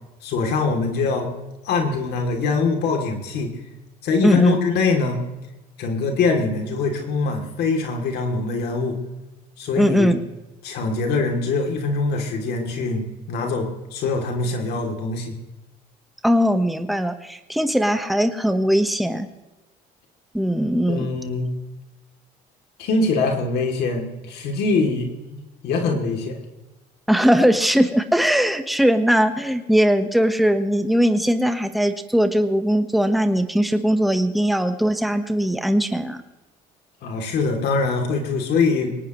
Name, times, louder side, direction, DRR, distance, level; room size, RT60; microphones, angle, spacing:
voice 1, 0.2-1.3 1.6-3.5 4.0-5.2 5.8-9.0 9.6-10.2 10.6-15.4 20.9-21.5 22.8-26.4 37.0-39.0, left 4 dB, 75° left, 2 dB, 3.0 m, -23 dB
voice 2, 4.2-4.6 9.8-10.2 16.2-19.3 20.3-21.1 27.1-36.2, equal, ahead, 7 dB, 1.3 m, -20 dB
21.5 x 18.5 x 3.2 m, 1.0 s
cardioid pair, 110°, 17 cm